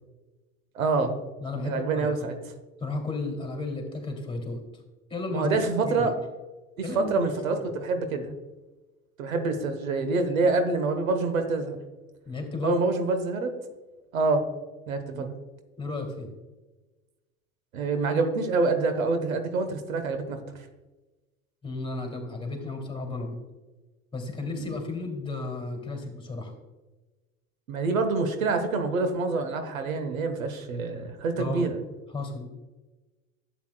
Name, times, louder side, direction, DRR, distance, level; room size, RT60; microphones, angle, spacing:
voice 1, 0.7-1.2 1.6-2.3 5.3-6.1 6.8-8.3 9.2-11.8 12.6-13.5 14.1-14.5 14.9-15.3 17.7-20.4 24.6-24.7 27.7-31.8, right 3 dB, 90° right, 7 dB, 1.1 m, -26 dB
voice 2, 1.4-2.3 2.8-4.6 5.1-6.1 6.8-7.3 12.2-12.8 15.1-15.3 15.8-16.3 21.6-23.4 24.1-26.5 31.4-31.7 32.1-32.5, left 3 dB, 15° left, 2 dB, 2.6 m, -33 dB
12.0 x 8.3 x 2.2 m, 1.2 s
hypercardioid pair, 75°, 40 cm